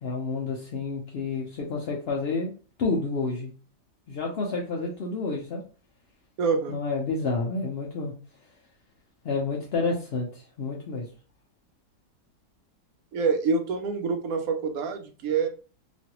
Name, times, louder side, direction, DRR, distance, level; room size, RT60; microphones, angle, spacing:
voice 1, 0.0-2.5 2.8-3.5 4.1-5.6 6.7-8.1 9.2-11.1, left 3 dB, 75° left, -1 dB, 0.5 m, -29 dB
voice 2, 6.4-6.8 13.1-15.5, right 5 dB, 70° right, 5 dB, 1.0 m, -26 dB
3.1 x 2.5 x 2.8 m, 0.36 s
omnidirectional pair, 1.7 m